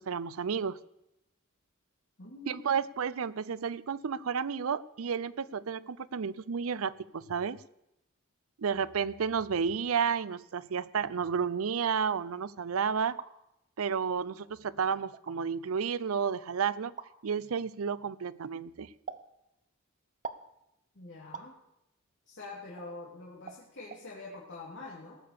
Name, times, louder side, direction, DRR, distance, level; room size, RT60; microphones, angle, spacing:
voice 1, 0.1-0.8 2.5-7.6 8.6-13.2 13.8-16.9 17.2-18.9, right 6 dB, 85° right, 17 dB, 0.5 m, -31 dB
voice 2, 2.2-2.8 20.9-21.5 22.3-25.2, left 2 dB, 60° left, -4 dB, 2.8 m, -45 dB
sound 1, 13.2-13.3 14.2-14.3 15.1-15.4 17.0-17.1 19.1-19.3 20.2-20.5 21.3-21.5 22.8-22.9 23.5-23.6 23.9-24.0, right 5 dB, 35° right, 0.7 m, -42 dB
18.5 x 6.9 x 6.8 m, 0.84 s
head